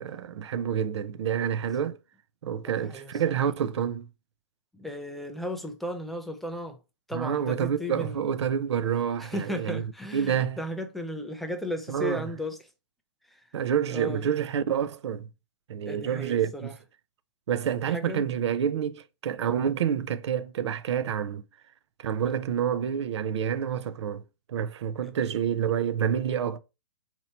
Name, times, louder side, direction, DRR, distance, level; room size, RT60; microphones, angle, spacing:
voice 1, 0.0-2.0 2.4-4.1 7.1-9.8 10.1-10.6 11.9-12.2 13.5-15.3 15.7-16.5 17.5-21.4 22.0-24.2 24.5-26.6, right 8 dB, 65° right, 0.5 m, -28 dB
voice 2, 2.6-3.4 4.7-6.8 7.1-8.3 9.2-12.6 13.3-13.4 13.9-14.3 15.9-16.7 17.9-18.3 25.0-25.3, left 1 dB, ahead, 0.3 m, -35 dB
4.4 x 2.7 x 4.2 m
hypercardioid pair, 150°, 15 cm